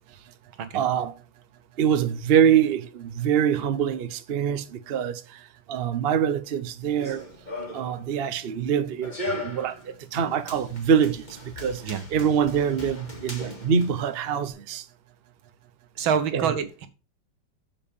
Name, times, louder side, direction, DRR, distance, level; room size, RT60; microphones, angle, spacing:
voice 1, 0.7-1.1 1.8-2.8 3.2-5.1 5.7-7.2 7.7-9.1 9.4-9.7 10.1-11.2 11.6-11.8 12.1-14.8 16.3-16.5, right 8 dB, 60° right, 0.6 m, -24 dB
Run, 6.8-14.5, left 1 dB, 20° left, 2.3 m, -39 dB
voice 2, 16.0-16.9, right 7 dB, 85° right, 2.0 m, -26 dB
7.4 x 5.1 x 7.0 m
omnidirectional pair, 2.2 m